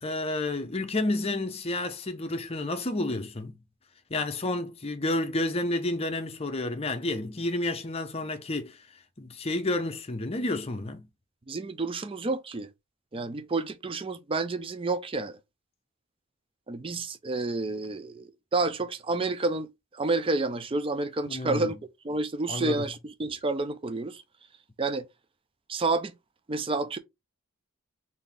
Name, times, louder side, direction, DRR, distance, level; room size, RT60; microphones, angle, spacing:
voice 1, 0.0-3.6 4.1-8.8 9.2-11.1 21.3-21.7 22.5-22.9, left 2 dB, 30° left, 0.7 m, -30 dB
voice 2, 11.5-12.7 13.1-15.4 16.7-21.8 22.0-24.2 24.8-25.1 25.7-26.1 26.5-27.0, right 3 dB, 25° right, 0.4 m, -29 dB
3.9 x 2.7 x 3.3 m
head